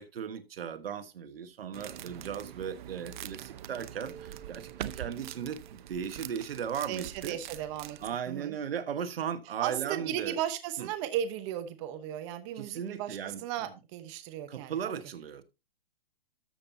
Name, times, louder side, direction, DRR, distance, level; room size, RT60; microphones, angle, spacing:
voice 1, 0.0-7.4 8.0-10.4 10.8-10.9 12.5-13.7 14.5-15.4, right 8 dB, 75° right, 1.3 m, -37 dB
sound 1, 1.7-8.2, right 11 dB, 55° right, 0.7 m, -44 dB
sound 2, 4.0-7.5, right 7 dB, 60° left, 5.8 m, -54 dB
voice 2, 6.9-8.0 8.3-8.6 9.6-14.9, right 11 dB, 30° right, 1.0 m, -35 dB
13.0 x 7.2 x 2.7 m
hypercardioid pair, 150°, 30 cm